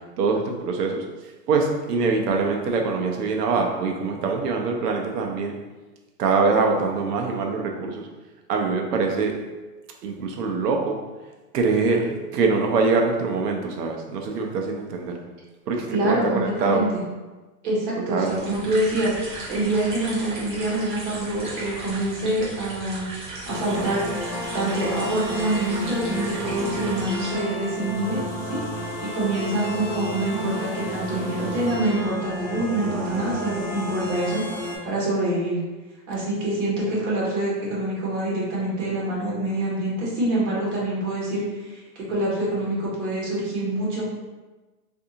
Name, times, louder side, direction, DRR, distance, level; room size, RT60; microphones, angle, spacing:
voice 1, 0.2-1.0 1.5-5.6 6.2-8.1 8.5-9.3 10.0-11.0 11.5-15.2 15.7-16.9 18.1-18.3, right 4 dB, 80° right, 2 dB, 0.7 m, -23 dB
voice 2, 15.9-17.0 17.6-23.1 23.4-24.1 24.5-28.2 28.5-35.6 36.1-44.0, right 1 dB, 45° right, -6 dB, 1.4 m, -26 dB
sound 1, 18.2-27.4, right 2 dB, 30° right, 0.7 m, -37 dB
sound 2, 23.5-34.8, equal, 25° left, 0.3 m, -32 dB
3.4 x 2.7 x 2.7 m, 1.2 s
supercardioid pair, 180°, 48 cm